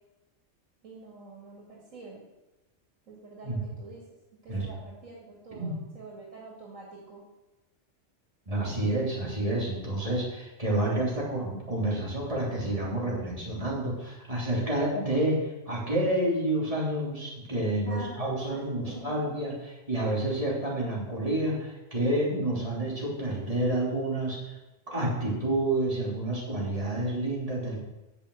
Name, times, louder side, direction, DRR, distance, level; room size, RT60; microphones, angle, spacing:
voice 1, 0.8-2.2 3.1-4.1 4.4-7.2 17.8-19.4, right 2 dB, 90° right, -3 dB, 2.6 m, -46 dB
voice 2, 8.5-24.5 24.9-27.8, right 1 dB, 30° right, -5 dB, 3.3 m, -29 dB
8.5 x 6.8 x 7.8 m, 1.0 s
omnidirectional pair, 1.3 m